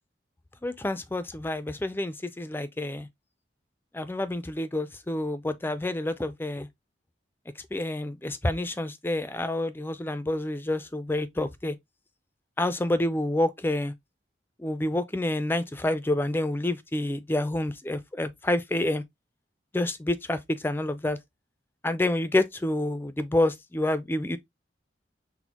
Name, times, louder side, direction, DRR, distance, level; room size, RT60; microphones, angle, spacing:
voice 1, 0.6-3.1 3.9-6.7 7.7-11.8 12.6-13.9 14.6-19.0 19.7-21.2 21.8-24.4, left 1 dB, 10° left, 0.3 m, -28 dB
6.1 x 2.1 x 2.8 m
head